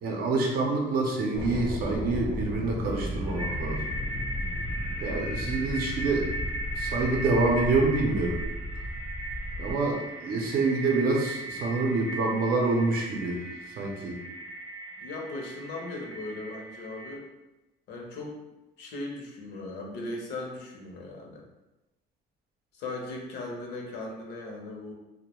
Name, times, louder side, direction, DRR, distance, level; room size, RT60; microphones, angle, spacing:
voice 1, 0.0-3.8 5.0-6.3 6.7-8.4 9.6-13.4 13.8-14.2, right 3 dB, 65° right, 0 dB, 0.5 m, -27 dB
voice 2, 0.7-1.0 5.0-5.3 9.6-9.9 15.0-17.3 17.9-18.3 18.8-21.4 22.7-24.9, left 2 dB, 75° left, 0 dB, 0.6 m, -38 dB
sound 1, 1.3-9.7, left 1 dB, 30° left, 0.4 m, -34 dB
sound 2, 2.9-17.2, right 1 dB, 20° right, 0.7 m, -38 dB
2.2 x 2.1 x 2.9 m, 1.0 s
cardioid pair, 110°, 17 cm